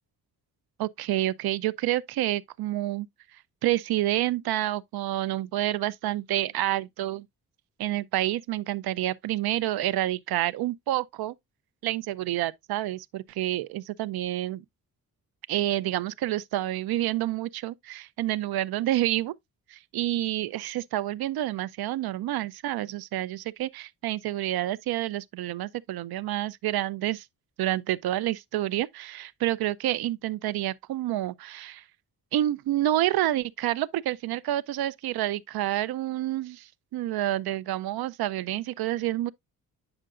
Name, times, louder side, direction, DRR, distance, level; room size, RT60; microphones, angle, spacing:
voice 1, 0.8-3.1 3.6-7.3 7.8-11.3 11.8-14.6 15.5-19.3 19.7-27.3 27.6-31.8 32.3-39.3, right 14 dB, 80° right, 0.5 m, -28 dB
8.8 x 5.6 x 2.4 m
wide cardioid pair, 170°, 36 cm